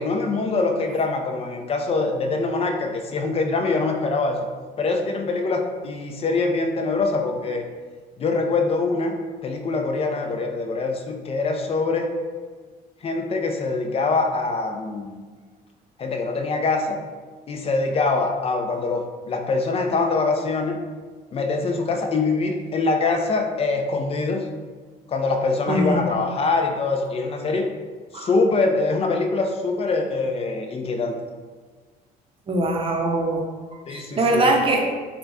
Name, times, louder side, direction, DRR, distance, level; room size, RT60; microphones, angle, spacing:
voice 1, 0.0-4.4 4.8-7.6 8.2-9.2 9.4-12.1 13.0-15.2 16.0-17.0 17.5-20.8 21.3-24.5 25.1-27.7 28.1-31.2 33.9-34.5, left 3 dB, 35° left, 4 dB, 0.5 m, -24 dB
voice 2, 25.7-26.0 28.1-28.3 32.5-33.4 33.9-34.9, right 2 dB, 30° right, 1 dB, 0.6 m, -22 dB
3.8 x 2.2 x 3.5 m, 1.4 s
cardioid pair, 110°, 17 cm